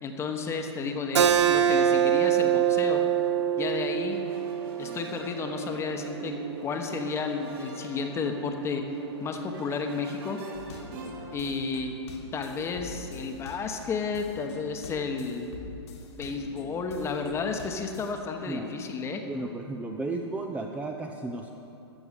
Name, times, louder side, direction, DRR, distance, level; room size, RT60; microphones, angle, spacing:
voice 1, 0.0-3.0 3.6-4.2 4.8-6.3 6.6-8.8 9.2-10.4 11.3-11.9 12.3-15.5 16.2-19.2, left 5 dB, 20° left, 5 dB, 1.0 m, -32 dB
Keyboard (musical), 1.2-6.3, right 9 dB, 75° right, 0.7 m, -25 dB
sound 1, 3.3-11.6, right 4 dB, 50° right, 2.1 m, -42 dB
sound 2, 10.5-18.1, left 2 dB, 70° left, 1.9 m, -45 dB
voice 2, 19.2-21.5, right 3 dB, 10° right, 2 dB, 0.5 m, -34 dB
13.5 x 7.1 x 6.7 m, 2.8 s
hypercardioid pair, 125°, 15 cm